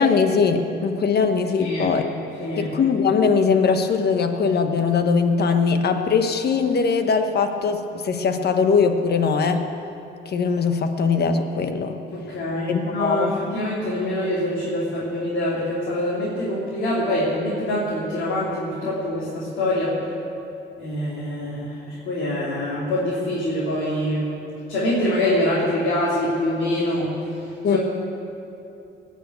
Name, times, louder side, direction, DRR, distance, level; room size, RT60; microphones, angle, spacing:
voice 1, 0.0-2.1 2.6-9.7 10.3-12.0 12.7-13.4 27.6-27.8, left 5 dB, 55° left, 7 dB, 1.2 m, -21 dB
voice 2, 1.6-1.9 2.4-2.7 12.1-19.9 20.8-24.3 24.7-27.1 27.6-27.8, left 1 dB, 85° left, -8 dB, 3.2 m, -25 dB
19.0 x 6.6 x 8.1 m, 2.8 s
cardioid pair, 90°, 20 cm